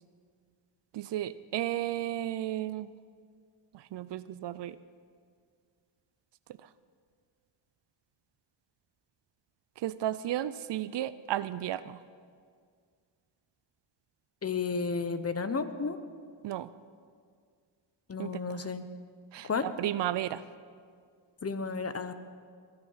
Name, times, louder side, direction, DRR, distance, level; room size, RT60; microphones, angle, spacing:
voice 1, 0.9-2.9 3.9-4.8 9.8-12.0 16.4-16.7 18.2-18.6 19.3-20.4, right 12 dB, 65° right, 16 dB, 0.6 m, -33 dB
voice 2, 14.4-16.0 18.1-18.9 19.5-19.7 21.4-22.1, left 4 dB, 30° left, 11 dB, 1.0 m, -32 dB
22.0 x 8.9 x 5.7 m, 2.1 s
cardioid pair, 75°, 47 cm